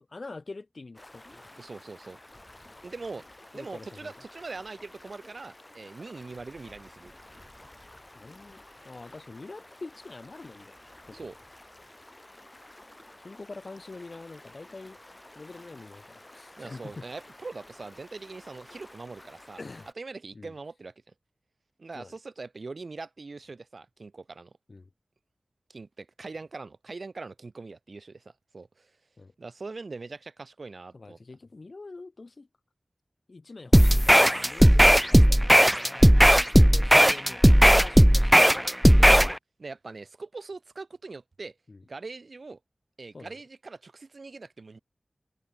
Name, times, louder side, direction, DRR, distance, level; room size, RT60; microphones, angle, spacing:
voice 1, 0.1-1.6 3.5-4.1 8.1-10.8 11.1-11.3 13.2-15.0 15.3-17.1 19.6-19.9 20.3-20.5 21.9-22.1 24.7-24.9 29.2-29.3 30.9-32.5 33.3-36.1 36.6-38.7 41.7-41.8 43.1-43.4, left 3 dB, 60° left, 3.1 m, -45 dB
Stream, 1.0-19.9, left 1 dB, 25° left, 3.9 m, -51 dB
voice 2, 1.6-2.2 2.8-3.3 3.5-7.1 11.1-11.4 16.6-19.6 20.0-20.9 21.8-24.5 25.7-28.9 29.4-31.2 39.0-39.3 39.6-41.6 41.9-42.6 43.0-44.8, right 3 dB, 70° right, 1.8 m, -42 dB
sound 1, 33.7-39.3, equal, 5° right, 0.3 m, -16 dB
wide cardioid pair, 65°, 0 cm